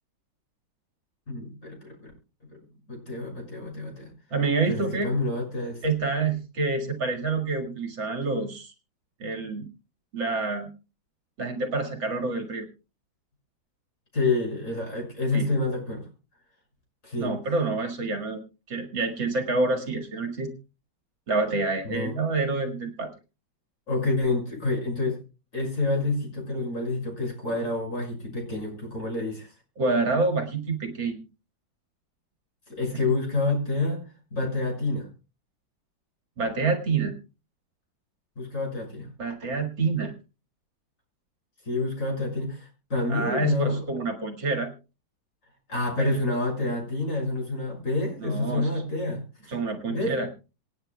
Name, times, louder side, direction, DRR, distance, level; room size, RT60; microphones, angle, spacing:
voice 1, 1.3-2.1 2.5-2.6 2.9-4.1 4.7-5.8 14.1-16.0 17.0-17.3 21.8-22.2 23.9-25.2 25.5-29.5 32.7-34.0 34.3-35.1 38.4-39.1 41.7-43.8 45.7-49.5 49.9-50.1, left 2 dB, 40° left, 0 dB, 6.5 m, -28 dB
voice 2, 4.3-5.1 5.8-8.7 9.2-9.7 10.1-10.7 11.4-12.7 15.3-15.5 17.2-20.5 21.3-23.1 29.8-31.2 36.4-37.1 39.2-40.1 43.1-44.7 46.0-46.1 48.2-48.7 49.5-50.3, right 3 dB, 70° right, 2 dB, 2.6 m, -27 dB
26.5 x 9.4 x 2.3 m, 0.32 s
omnidirectional pair, 2.1 m